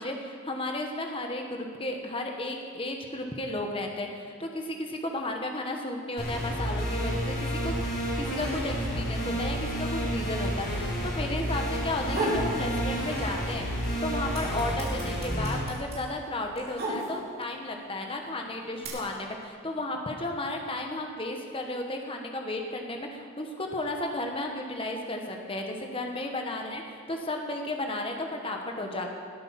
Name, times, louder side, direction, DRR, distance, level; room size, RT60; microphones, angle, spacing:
voice 1, 0.0-7.4 7.6-7.7 8.2-13.7 14.0-29.2, left 1 dB, 25° left, 3 dB, 1.3 m, -33 dB
sound 1, 6.2-15.6, equal, 45° left, 4.5 m, -30 dB
sound 2, 12.1-12.5 12.9-13.6 13.9-17.5 18.2-18.9, right 1 dB, 45° right, 3.6 m, -33 dB
19.5 x 9.0 x 5.9 m, 2.2 s
head